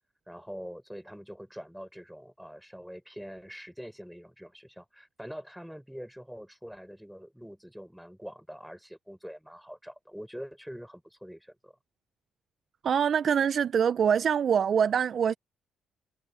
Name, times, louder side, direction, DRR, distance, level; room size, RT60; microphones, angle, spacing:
voice 1, 0.3-11.7, equal, ahead, 6.1 m, -44 dB
voice 2, 12.8-15.3, right 7 dB, 55° right, 0.5 m, -24 dB
cardioid pair, 90°, 0 cm